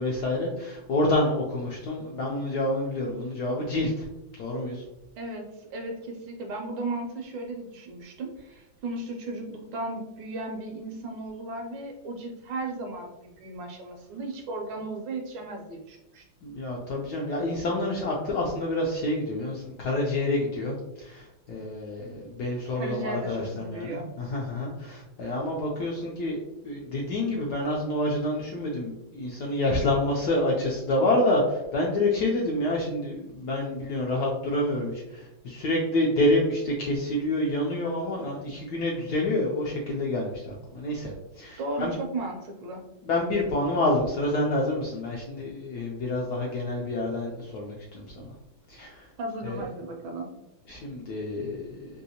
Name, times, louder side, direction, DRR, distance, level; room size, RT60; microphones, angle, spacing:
voice 1, 0.0-4.0 4.4-4.8 16.4-26.4 26.6-42.0 43.0-48.2 48.7-49.1 49.4-49.6 50.7-51.9, left 1 dB, 75° left, -2 dB, 0.9 m, -28 dB
voice 2, 5.2-16.2 22.7-24.1 41.6-42.8 49.2-50.3, right 2 dB, 75° right, 3 dB, 1.2 m, -35 dB
3.4 x 2.7 x 2.7 m, 0.93 s
omnidirectional pair, 2.2 m